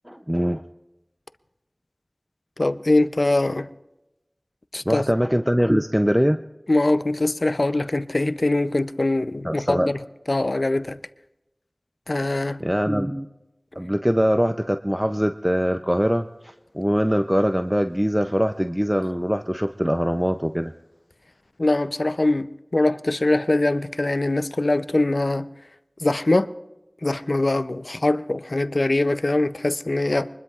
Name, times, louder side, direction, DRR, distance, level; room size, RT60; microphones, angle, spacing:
voice 1, 0.1-0.6 4.9-6.4 9.4-9.9 12.6-13.3 13.8-20.7, equal, 10° right, 0.4 m, -22 dB
voice 2, 2.6-3.7 4.7-5.0 6.7-9.9 10.3-11.0 12.1-12.6 21.6-25.5 26.0-26.5 27.0-30.3, left 2 dB, 75° left, 0.5 m, -22 dB
24.0 x 20.5 x 2.4 m
wide cardioid pair, 40°, 0 cm